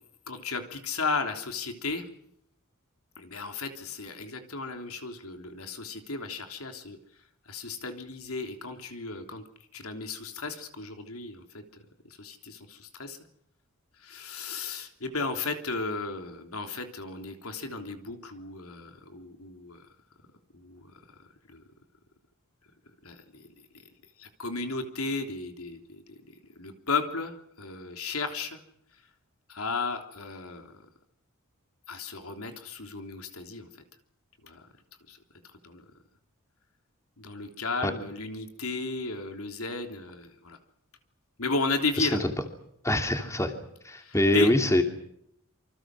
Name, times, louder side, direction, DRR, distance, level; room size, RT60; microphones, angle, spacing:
voice 1, 0.3-2.1 3.2-9.5 9.7-11.6 12.0-13.2 14.0-19.9 20.5-21.6 23.0-23.5 23.7-23.8 24.2-28.6 28.9-29.0 29.5-30.9 31.9-33.7 34.4-34.7 35.1-35.2 35.5-35.8 37.2-40.6 41.4-42.2 43.9-44.5, left 3 dB, 70° left, 5 dB, 3.3 m, -34 dB
voice 2, 42.8-43.5 43.8-44.8, left 1 dB, 15° left, 5 dB, 3.1 m, -24 dB
28.0 x 25.0 x 6.3 m, 0.74 s
head